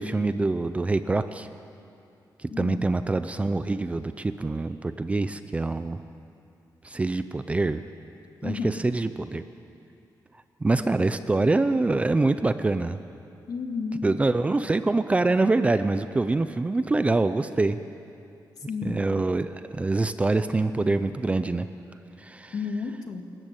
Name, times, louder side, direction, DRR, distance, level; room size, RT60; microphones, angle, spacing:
voice 1, 0.0-1.5 2.4-6.0 6.8-7.8 8.4-9.4 10.6-13.0 14.0-17.8 18.8-21.7 22.2-22.5, right 3 dB, 15° right, 11 dB, 0.5 m, -25 dB
voice 2, 2.5-2.8 8.4-8.7 13.5-14.0 18.7-19.0 22.5-23.3, left 5 dB, 55° left, 4 dB, 2.1 m, -31 dB
26.0 x 14.5 x 8.9 m, 2.6 s
wide cardioid pair, 170°, 7 cm